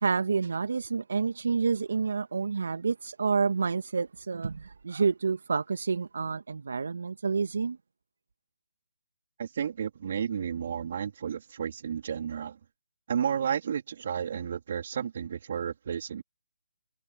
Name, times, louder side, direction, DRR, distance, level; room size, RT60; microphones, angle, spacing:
voice 1, 0.0-7.8, right 5 dB, 65° right, 1.1 m, -29 dB
voice 2, 9.4-12.6 13.1-16.2, right 8 dB, 50° right, 2.9 m, -32 dB
figure-of-eight pair, 150°, 0 cm